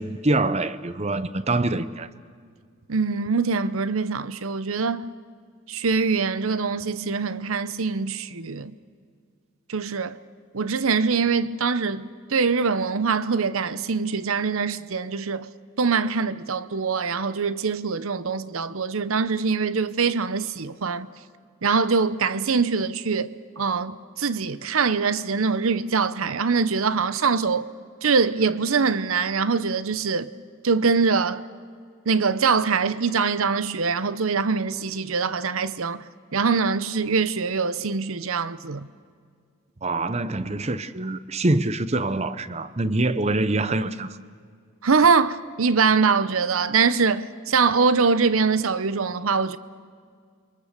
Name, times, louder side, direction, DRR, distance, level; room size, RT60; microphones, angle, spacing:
voice 1, 0.0-2.1 39.8-44.2, right 2 dB, 30° right, 0.8 m, -25 dB
voice 2, 2.9-5.0 5.7-8.7 9.7-10.2 10.5-15.5 15.8-21.1 21.6-27.7 28.0-30.3 30.6-31.4 32.1-36.0 36.3-38.9 44.8-49.6, right 5 dB, 75° right, 0.8 m, -23 dB
29.0 x 23.0 x 6.8 m
head